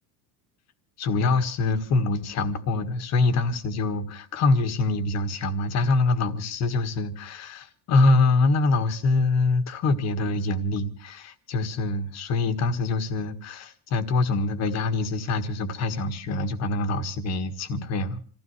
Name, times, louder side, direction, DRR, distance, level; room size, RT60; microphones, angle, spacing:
voice 1, 1.0-18.2, left 3 dB, 35° left, 1.6 m, -24 dB
27.5 x 16.0 x 3.2 m
cardioid pair, 175°, 48 cm